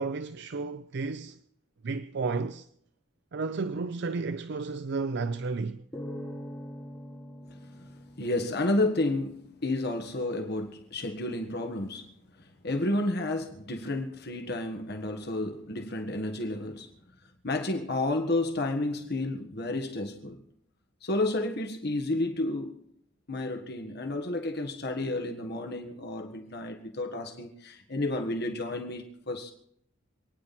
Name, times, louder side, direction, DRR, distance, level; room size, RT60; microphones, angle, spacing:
voice 1, 0.0-1.4 1.8-2.7 3.3-5.8, right 4 dB, 60° right, 0.5 m, -32 dB
sound 1, 5.9-9.3, equal, 15° left, 2.5 m, -43 dB
voice 2, 8.2-12.1 12.6-16.9 17.4-20.4 21.0-22.8 23.3-29.5, left 2 dB, 55° left, 1.7 m, -31 dB
27.0 x 10.0 x 4.3 m
head